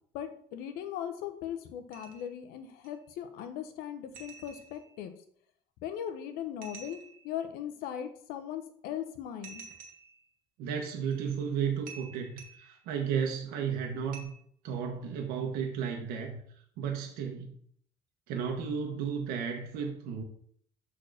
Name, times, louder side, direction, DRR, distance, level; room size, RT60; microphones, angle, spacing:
voice 1, 0.1-5.1 5.8-9.6, left 9 dB, 85° left, 8 dB, 1.0 m, -39 dB
sound 1, 1.9-2.4 2.8-2.9 4.1-5.0 6.6-7.3 9.4-10.2 11.1-11.3 11.9-12.8 14.1-14.2, right 6 dB, 60° right, 1.7 m, -49 dB
voice 2, 10.6-14.3 14.6-16.4 16.8-17.5 18.3-20.2, right 7 dB, 85° right, 2 dB, 1.3 m, -33 dB
6.4 x 4.2 x 6.5 m, 0.63 s
cardioid pair, 175°, 15 cm